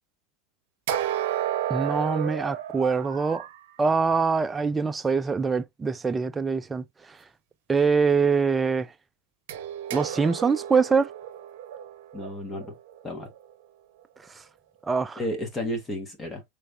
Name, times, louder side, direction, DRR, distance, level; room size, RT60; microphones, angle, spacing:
sound 1, 0.9-3.6 9.5-13.5, right 11 dB, 65° right, 0.8 m, -32 dB
voice 1, 1.7-3.5 3.8-6.8 7.7-8.9 9.9-11.1 14.8-15.2, right 5 dB, 15° right, 0.3 m, -24 dB
voice 2, 12.1-12.8 13.0-13.3 15.2-16.4, left 1 dB, 20° left, 1.1 m, -32 dB
3.2 x 3.2 x 2.4 m
supercardioid pair, 130°, 0 cm